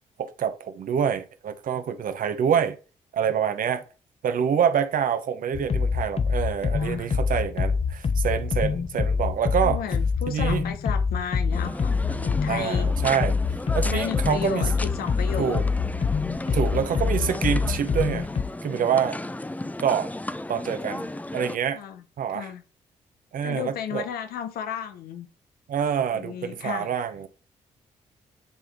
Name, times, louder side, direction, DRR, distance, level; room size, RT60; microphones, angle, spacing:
voice 1, 0.2-2.8 3.1-3.8 4.2-9.8 10.3-10.6 12.5-13.4 13.7-14.7 15.4-15.6 16.5-18.3 18.6-19.2 19.8-20.1 20.5-21.8 22.2-22.5 23.3-24.0 25.7-27.3, right 8 dB, 60° right, 0.9 m, -26 dB
sound 1, 5.5-18.4, left 5 dB, 40° left, 0.8 m, -25 dB
voice 2, 6.8-7.2 9.6-12.9 13.9-15.6 16.5-16.7 19.6-19.7 21.7-22.0 22.3-22.6 23.4-25.3 26.1-26.9, left 8 dB, 70° left, 1.0 m, -34 dB
sound 2, 11.5-21.6, left 1 dB, 10° left, 0.5 m, -34 dB
10.5 x 3.7 x 3.6 m
hypercardioid pair, 45°, 16 cm